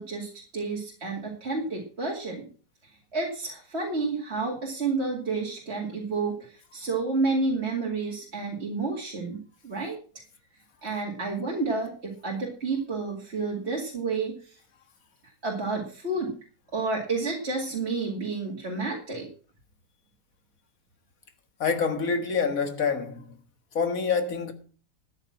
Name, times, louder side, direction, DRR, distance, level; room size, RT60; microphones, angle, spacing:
voice 1, 0.0-2.5 3.1-10.0 10.8-14.6 15.4-16.3 16.7-19.3, right 3 dB, 40° right, 2.6 m, -30 dB
voice 2, 21.6-23.2 23.7-24.5, left 5 dB, 55° left, 2.1 m, -26 dB
13.5 x 9.1 x 5.8 m
omnidirectional pair, 1.8 m